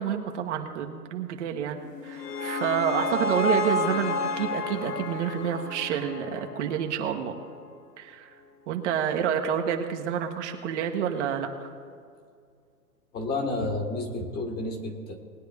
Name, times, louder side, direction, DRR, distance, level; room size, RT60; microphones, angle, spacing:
voice 1, 0.0-7.3 8.0-8.3 8.7-11.7, right 8 dB, 50° right, 4 dB, 1.3 m, -29 dB
sound 1, 1.8-7.0, left 2 dB, 90° left, 1.0 m, -30 dB
voice 2, 13.1-15.2, left 2 dB, 20° left, 3 dB, 1.5 m, -30 dB
20.0 x 9.3 x 3.5 m, 2.2 s
hypercardioid pair, 130°, 47 cm